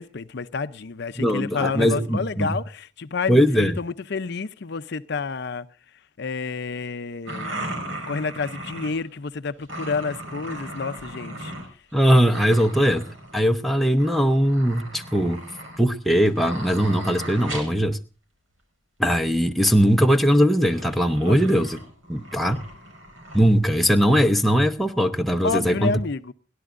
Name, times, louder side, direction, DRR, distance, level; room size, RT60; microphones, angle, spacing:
voice 1, 0.0-5.7 6.2-7.6 8.1-11.5 21.3-21.4 25.4-26.3, left 4 dB, 55° left, 0.6 m, -29 dB
voice 2, 1.2-2.6 3.3-3.8 11.9-13.1 13.3-15.4 15.8-18.0 19.0-21.8 22.1-22.7 23.3-26.0, equal, ahead, 0.8 m, -20 dB
sound 1, 7.2-9.1 9.6-11.7 11.9-13.5 13.8-17.8 19.7-19.8 20.6-23.5 24.3-24.4 24.7-24.8, right 1 dB, 80° right, 4.9 m, -37 dB
30.0 x 11.5 x 2.5 m
head